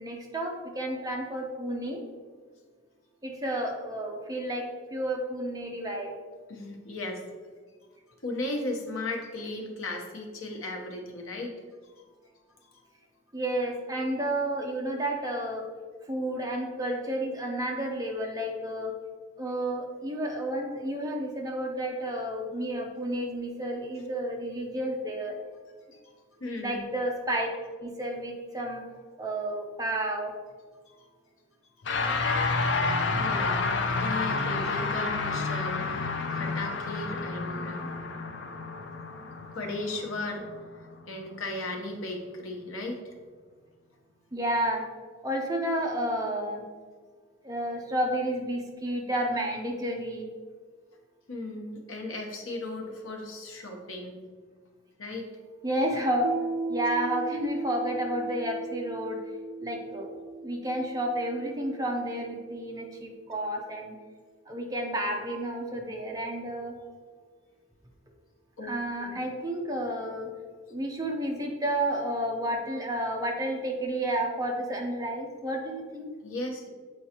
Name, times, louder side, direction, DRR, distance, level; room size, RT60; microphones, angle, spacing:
voice 1, 0.0-2.0 3.2-4.6 4.9-6.1 13.3-15.6 16.1-18.9 19.4-25.3 26.6-27.5 27.8-28.8 29.2-30.3 44.3-44.8 45.2-46.6 47.4-50.3 55.6-56.3 56.7-59.2 59.6-60.2 60.4-64.0 64.5-66.7 68.6-70.3 70.7-76.1, right 1 dB, 15° right, 1 dB, 0.7 m, -31 dB
voice 2, 6.5-7.2 8.2-11.5 12.0-12.1 13.9-14.0 25.9-26.0 26.4-26.8 30.9-31.0 31.9-32.0 33.1-37.9 39.5-40.5 41.1-43.1 45.7-45.8 51.3-54.3 55.0-55.3 68.6-68.7 69.0-69.1 76.2-76.7, left 2 dB, 85° left, 2 dB, 1.0 m, -36 dB
sound 1, 31.8-41.3, left 3 dB, 60° left, 0.5 m, -30 dB
Piano, 56.2-63.5, right 3 dB, 65° right, 0.3 m, -38 dB
7.6 x 4.5 x 2.9 m, 1.5 s
head